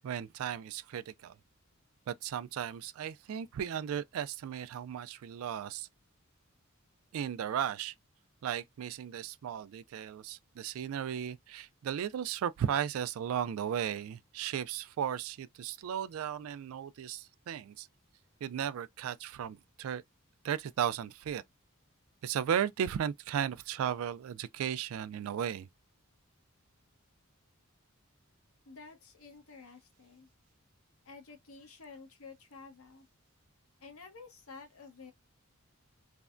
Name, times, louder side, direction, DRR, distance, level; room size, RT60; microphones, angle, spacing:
voice 1, 0.0-1.3 2.1-5.9 7.1-7.9 8.4-17.9 18.4-20.0 20.4-21.4 22.2-25.7, right 9 dB, 80° right, 0.3 m, -35 dB
voice 2, 28.6-30.3 31.0-33.1 33.8-35.1, left 4 dB, 85° left, 0.9 m, -51 dB
3.3 x 2.1 x 2.4 m
head